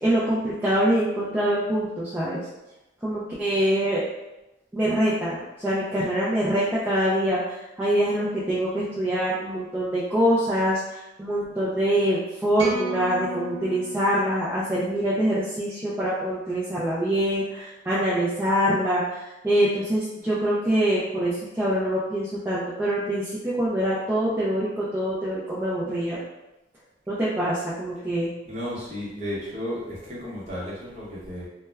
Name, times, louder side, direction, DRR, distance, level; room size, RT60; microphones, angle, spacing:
voice 1, 0.0-2.5 3.0-4.0 4.7-26.2 27.1-28.3, right 1 dB, 10° right, -9 dB, 0.3 m, -24 dB
sound 1, 12.6-15.0, left 1 dB, 70° right, 0.5 m, -36 dB
voice 2, 28.4-31.5, equal, 35° right, -7 dB, 0.8 m, -33 dB
2.2 x 2.1 x 3.2 m, 0.97 s
head